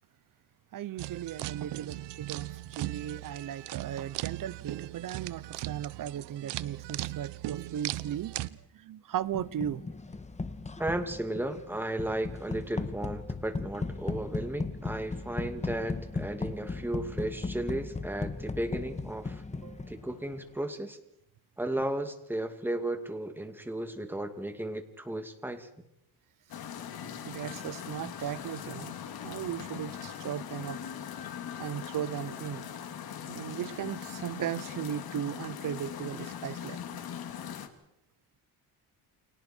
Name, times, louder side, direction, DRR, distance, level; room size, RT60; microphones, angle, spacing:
voice 1, 0.7-9.8 19.6-19.9 27.2-28.9 29.2-30.8 31.6-32.7 33.3-36.8, right 10 dB, 50° right, 0.9 m, -37 dB
sound 1, 1.0-8.5, right 16 dB, 80° right, 0.9 m, -38 dB
sound 2, 9.3-20.2, left 3 dB, 15° left, 1.4 m, -37 dB
voice 2, 10.8-19.4 19.9-21.0 21.6-25.7, right 1 dB, 5° right, 2.5 m, -34 dB
sound 3, 26.5-37.7, left 8 dB, 60° left, 2.6 m, -40 dB
30.0 x 24.5 x 4.6 m
cardioid pair, 115°, 41 cm